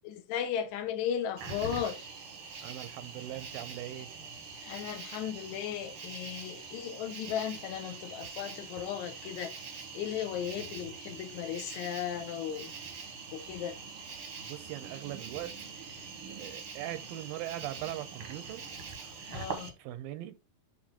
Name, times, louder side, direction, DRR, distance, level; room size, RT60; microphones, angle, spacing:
voice 1, 0.0-2.1 4.6-12.7 13.3-13.8 19.3-19.7, left 9 dB, 70° left, 1.9 m, -36 dB
Cricket, 1.4-19.7, right 5 dB, 60° right, 1.4 m, -44 dB
voice 2, 2.6-4.1 14.4-15.5 16.4-18.6 19.8-20.4, right 13 dB, 85° right, 2.5 m, -40 dB
8.1 x 3.4 x 3.7 m
omnidirectional pair, 4.1 m